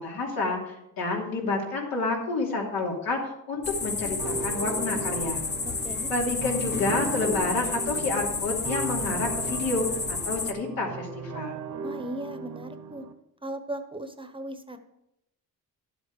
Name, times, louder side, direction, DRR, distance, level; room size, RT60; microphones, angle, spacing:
voice 1, 0.0-3.2 3.5-5.4 6.1-11.6, left 3 dB, 85° left, -1 dB, 3.0 m, -29 dB
sound 1, 3.6-10.5, left 4 dB, 30° left, 0.9 m, -31 dB
sound 2, 4.2-13.1, right 5 dB, 60° right, 1.0 m, -37 dB
voice 2, 5.6-6.1 11.8-13.1 13.4-14.8, right 1 dB, 15° right, 8 dB, 0.9 m, -37 dB
11.5 x 8.0 x 4.8 m, 0.84 s
cardioid pair, 115°, 35 cm